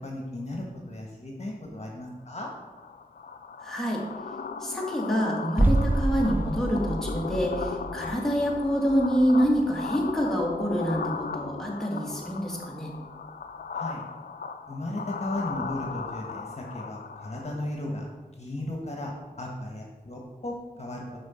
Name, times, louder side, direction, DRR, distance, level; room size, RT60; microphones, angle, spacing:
voice 1, 0.0-2.5 13.7-14.0 14.7-18.1 18.4-19.1 19.4-21.0, left 1 dB, 45° left, -1 dB, 1.4 m, -35 dB
sound 1, 2.4-17.7, left 5 dB, 75° left, 0.5 m, -37 dB
voice 2, 3.6-4.0 4.6-13.0, equal, 5° left, -3 dB, 1.8 m, -26 dB
sound 2, 5.6-11.3 11.6-11.7, right 1 dB, 10° right, 0.3 m, -29 dB
6.3 x 5.8 x 4.3 m, 1.3 s
cardioid pair, 45°, 15 cm